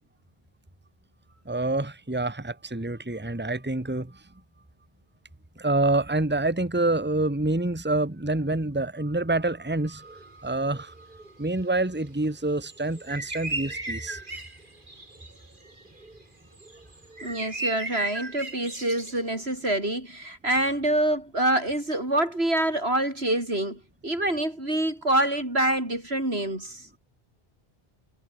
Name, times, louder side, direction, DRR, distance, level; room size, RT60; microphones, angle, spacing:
voice 1, 1.4-4.2 5.6-14.2, right 2 dB, 10° right, 1.6 m, -27 dB
sound 1, 10.0-10.3 10.6-16.2 16.5-19.4, right 2 dB, 55° right, 3.5 m, -37 dB
voice 2, 17.2-26.9, right 1 dB, 90° right, 7.5 m, -26 dB
omnidirectional pair, 1.0 m